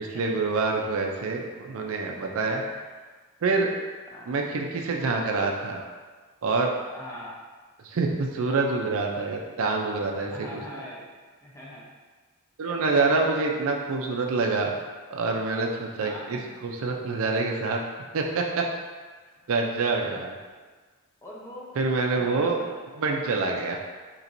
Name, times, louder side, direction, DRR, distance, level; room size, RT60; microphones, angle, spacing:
voice 1, 0.0-2.6 3.4-3.7 4.3-5.8 6.4-6.7 7.8-10.6 12.6-14.7 15.1-17.8 18.1-18.7 19.5-20.4 21.8-22.6 23.0-23.8, right 3 dB, 65° right, 1 dB, 0.4 m, -26 dB
voice 2, 2.4-3.1 4.1-4.3 6.9-7.3 9.5-9.8 10.3-11.1 11.4-11.9 12.6-13.9 14.4-14.6 16.0-16.4 19.2-19.5 21.2-21.7 22.1-22.8, left 1 dB, 10° left, -5 dB, 0.7 m, -43 dB
4.3 x 3.0 x 2.6 m, 1.4 s
head